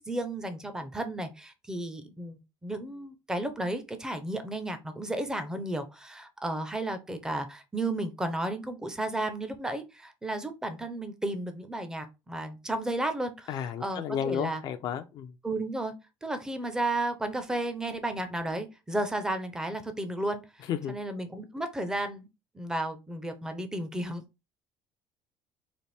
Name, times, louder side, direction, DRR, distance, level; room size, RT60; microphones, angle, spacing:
voice 1, 0.0-14.6 15.4-15.9 16.2-22.3 22.5-24.2, right 1 dB, 5° right, 0.5 m, -33 dB
voice 2, 13.5-15.3 20.7-20.9, left 8 dB, 45° left, 0.4 m, -32 dB
4.1 x 2.5 x 3.2 m
cardioid pair, 155°, 10 cm